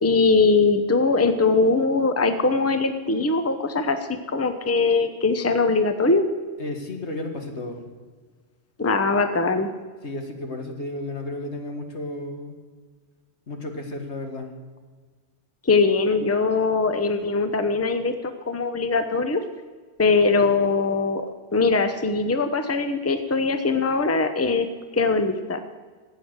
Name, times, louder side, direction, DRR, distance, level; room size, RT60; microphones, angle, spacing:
voice 1, 0.0-6.2 8.8-9.7 15.6-19.4 20.0-21.2 21.5-24.7 24.9-25.6, left 3 dB, 15° left, 8 dB, 0.8 m, -21 dB
voice 2, 6.6-7.8 10.0-12.6 13.5-14.5, left 2 dB, 75° left, 3 dB, 2.1 m, -33 dB
15.0 x 8.6 x 8.1 m, 1.5 s
omnidirectional pair, 1.1 m